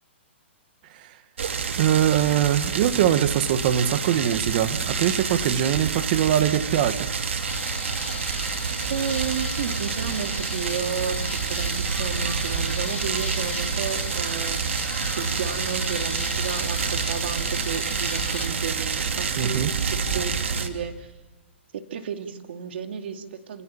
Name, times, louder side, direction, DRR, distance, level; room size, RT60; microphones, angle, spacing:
sound 1, 1.4-20.7, right 5 dB, 80° right, 2.8 m, -28 dB
voice 1, 1.8-7.1 19.4-19.7, right 10 dB, 45° right, 1.8 m, -22 dB
sound 2, 7.5-18.5, left 7 dB, 80° left, 1.7 m, -38 dB
voice 2, 8.9-14.8 15.2-21.1 21.7-23.6, right 7 dB, 60° right, 2.5 m, -32 dB
30.0 x 18.0 x 7.2 m
hypercardioid pair, 140°, 7 cm